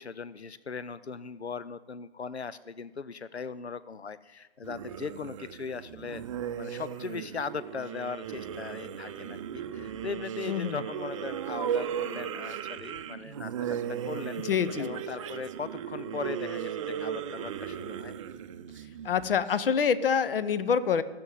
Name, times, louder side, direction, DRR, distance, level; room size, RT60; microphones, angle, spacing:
voice 1, 0.0-6.2 6.6-14.4 14.8-18.1, left 5 dB, 90° left, 16 dB, 0.6 m, -39 dB
sound 1, 4.6-19.5, right 8 dB, 30° right, 0.6 m, -36 dB
voice 2, 10.5-10.8 14.4-14.9 19.0-21.0, left 7 dB, 60° left, 15 dB, 0.9 m, -26 dB
15.0 x 7.7 x 9.0 m, 1.2 s
figure-of-eight pair, 130°, 32 cm